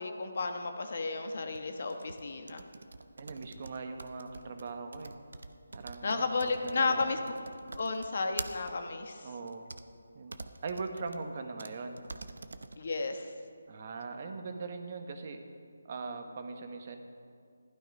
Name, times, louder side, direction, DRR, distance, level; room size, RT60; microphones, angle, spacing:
voice 1, 0.0-2.6 6.0-7.2 7.8-9.3 12.8-13.3, left 3 dB, 55° left, 6 dB, 1.3 m, -33 dB
sound 1, 1.5-8.7 9.5-9.8 10.3-11.2 11.6-11.7 12.0-12.8, right 3 dB, 70° right, 0.8 m, -45 dB
voice 2, 3.2-5.1 5.7-7.2 9.2-9.6 10.1-12.0 13.7-15.4 15.8-17.0, right 4 dB, 40° right, 6 dB, 1.2 m, -40 dB
15.5 x 12.0 x 5.3 m, 2.3 s
figure-of-eight pair, 160°, 0 cm